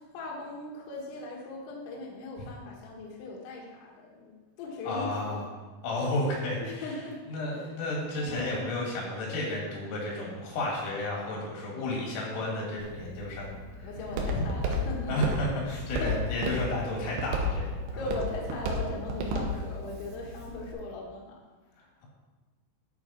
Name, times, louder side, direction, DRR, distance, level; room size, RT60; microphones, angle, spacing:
voice 1, 0.1-5.4 6.6-7.2 7.5-7.6 8.2-8.7 13.8-15.1 15.7-16.2 18.0-21.4, left 2 dB, 70° left, -3 dB, 3.6 m, -39 dB
voice 2, 4.8-5.5 5.8-6.9 7.3-13.9 15.1-18.1, left 1 dB, 90° left, -3 dB, 5.1 m, -32 dB
Walk footsteps, 12.8-20.7, equal, 75° right, 2.9 m, -33 dB
11.0 x 5.9 x 4.4 m, 1.3 s
omnidirectional pair, 5.7 m